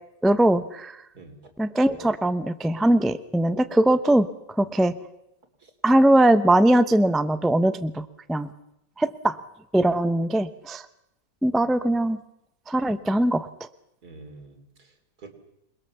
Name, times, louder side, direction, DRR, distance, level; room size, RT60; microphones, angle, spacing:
voice 1, 0.2-1.0 1.6-4.3 4.6-4.9 5.8-8.5 9.0-9.4 9.7-10.8 11.4-12.2 12.7-13.7, right 1 dB, ahead, 11 dB, 0.4 m, -21 dB
voice 2, 1.1-1.5 5.6-5.7 14.0-15.3, right 3 dB, 60° right, 6 dB, 3.8 m, -47 dB
28.0 x 21.5 x 7.1 m, 0.85 s
omnidirectional pair, 1.9 m